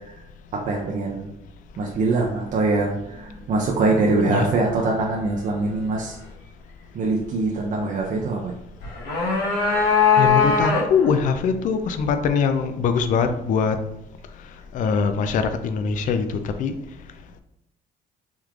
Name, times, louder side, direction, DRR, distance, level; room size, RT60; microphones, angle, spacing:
voice 1, 0.5-1.3 1.8-6.2 6.9-8.5, right 3 dB, 50° right, -2 dB, 0.5 m, -23 dB
sound 1, 8.8-11.1, left 5 dB, 75° left, 1.2 m, -20 dB
voice 2, 10.2-13.8 14.7-16.7, left 5 dB, 50° left, 8 dB, 0.4 m, -22 dB
3.5 x 3.1 x 2.4 m, 0.82 s
cardioid pair, 110°, 17 cm